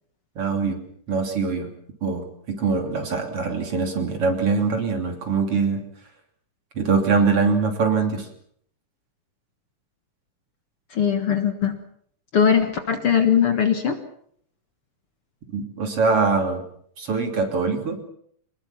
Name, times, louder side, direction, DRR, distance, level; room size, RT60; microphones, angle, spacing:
voice 1, 0.4-0.8 1.1-1.7 2.0-5.8 6.8-8.3 15.5-16.6 17.0-18.0, right 4 dB, 45° right, 5 dB, 3.8 m, -23 dB
voice 2, 10.9-11.8 12.3-14.0, left 8 dB, 50° left, 7 dB, 2.2 m, -20 dB
24.5 x 20.0 x 7.2 m, 0.64 s
omnidirectional pair, 3.6 m